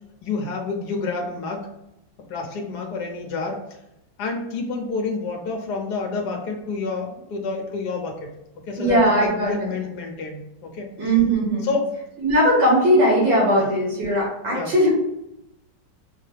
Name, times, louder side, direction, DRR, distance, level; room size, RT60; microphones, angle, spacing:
voice 1, 0.2-1.7 2.3-3.6 4.2-8.3 8.7-10.9 11.6-11.9 13.5-13.7 14.5-14.7, left 4 dB, 65° left, 2 dB, 1.3 m, -28 dB
voice 2, 8.8-9.7 11.0-11.7 12.2-14.9, right 1 dB, 80° right, -6 dB, 2.3 m, -19 dB
6.4 x 2.2 x 3.3 m, 0.85 s
omnidirectional pair, 2.1 m